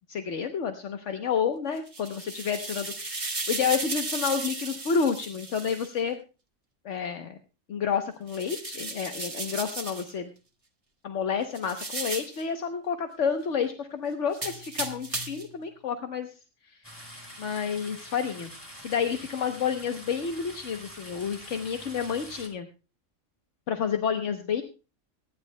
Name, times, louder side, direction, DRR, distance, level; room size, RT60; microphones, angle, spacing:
voice 1, 0.1-6.2 6.8-7.4 7.7-10.3 11.0-16.3 16.7-16.8 17.4-18.5 18.8-22.7 23.7-24.6, left 6 dB, 70° left, 6 dB, 1.3 m, -30 dB
sound 1, 1.8-5.9 8.3-10.1 11.5-12.4 14.3-15.5, right 2 dB, 25° right, 1.4 m, -35 dB
sound 2, 16.8-22.5, equal, 20° left, 2.8 m, -45 dB
23.5 x 11.0 x 2.2 m, 0.32 s
omnidirectional pair, 1.3 m